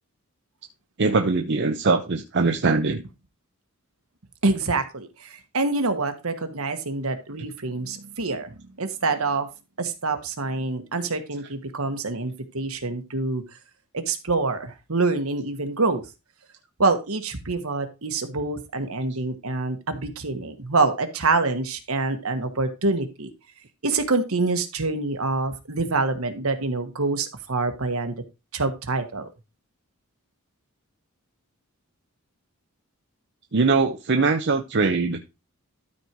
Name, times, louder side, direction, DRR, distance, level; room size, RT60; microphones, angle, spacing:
voice 1, 1.0-3.0 33.5-35.2, right 4 dB, 55° right, 0.8 m, -22 dB
voice 2, 4.4-8.5 8.8-9.5 9.8-13.4 13.9-16.0 16.8-23.3 23.8-28.1 28.5-29.3, right 3 dB, 70° right, 1.5 m, -26 dB
13.0 x 4.4 x 4.6 m
head